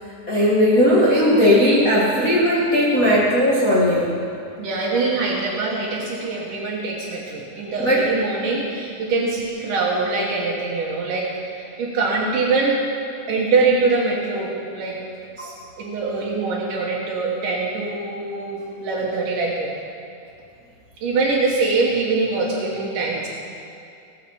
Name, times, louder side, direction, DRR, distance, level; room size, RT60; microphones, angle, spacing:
voice 1, 0.3-4.1 7.8-8.1 9.1-9.2, equal, 30° left, -7 dB, 1.8 m, -17 dB
voice 2, 4.6-12.8 13.3-15.0 15.4-19.7 21.0-23.3, right 3 dB, 80° right, -4 dB, 3.0 m, -23 dB
18.5 x 6.9 x 7.1 m, 2.6 s
omnidirectional pair, 3.7 m